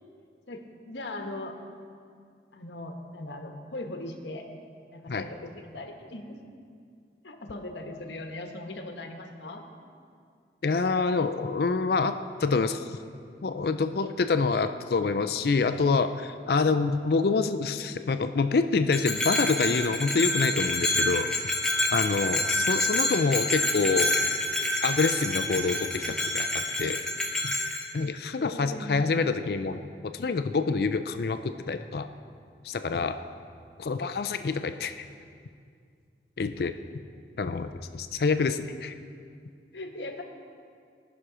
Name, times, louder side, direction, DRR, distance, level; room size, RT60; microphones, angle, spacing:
voice 1, 0.5-1.5 2.5-4.5 4.9-6.4 7.2-9.6 28.5-29.0 39.7-40.2, left 2 dB, 85° left, 4 dB, 1.1 m, -39 dB
voice 2, 10.6-12.1 12.4-13.0 13.4-21.3 21.9-24.1 24.8-27.0 27.4-27.5 27.9-29.8 30.1-32.1 32.6-33.1 33.8-35.1 36.4-36.7 37.4-38.9, left 4 dB, 60° left, 9 dB, 0.4 m, -26 dB
Bell, 18.9-27.9, left 1 dB, 5° left, 0.9 m, -28 dB
18.0 x 6.1 x 4.9 m, 2.3 s
head